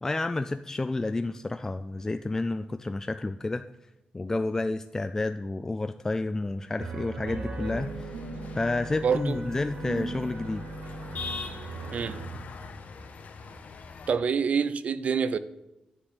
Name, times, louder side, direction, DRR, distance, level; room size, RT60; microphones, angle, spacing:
voice 1, 0.0-3.6 4.1-8.2 8.6-10.6, left 2 dB, 20° left, 0.3 m, -30 dB
sound 1, 6.8-12.3, right 3 dB, 70° right, 1.7 m, -38 dB
sound 2, 7.6-14.2, left 4 dB, 65° left, 1.1 m, -43 dB
voice 2, 9.0-9.4 11.9-12.2 14.1-15.4, right 6 dB, 55° right, 0.5 m, -26 dB
10.0 x 5.3 x 8.2 m
wide cardioid pair, 130°, 3 cm